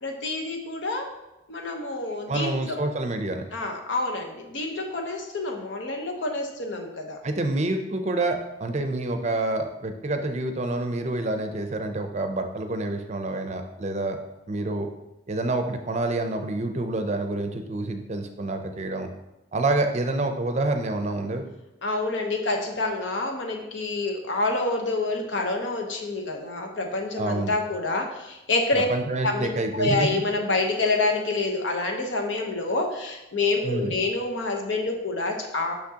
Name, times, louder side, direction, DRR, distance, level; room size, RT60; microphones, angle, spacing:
voice 1, 0.0-1.1 1.5-2.8 3.5-7.2 21.8-28.9 29.2-35.7, left 2 dB, 80° left, 3 dB, 1.0 m, -27 dB
voice 2, 2.3-3.5 7.2-14.2 14.5-14.9 15.3-19.1 19.5-21.5 27.2-27.5 28.7-30.2 33.6-33.9, right 2 dB, 35° right, 6 dB, 0.5 m, -27 dB
6.0 x 6.0 x 2.8 m, 0.97 s
head